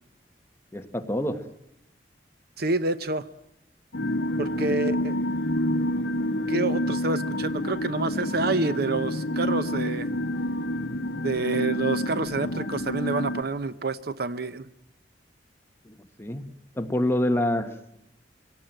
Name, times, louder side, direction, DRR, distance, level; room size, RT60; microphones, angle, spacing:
voice 1, 0.7-1.5 4.3-4.8 15.8-17.7, left 1 dB, 15° left, 5 dB, 1.4 m, -28 dB
voice 2, 2.6-3.3 4.4-5.2 6.5-10.1 11.2-14.7, right 3 dB, 60° right, 13 dB, 0.8 m, -28 dB
sound 1, 3.9-13.4, left 1 dB, 70° left, 1.1 m, -28 dB
25.0 x 17.5 x 9.0 m, 0.86 s
head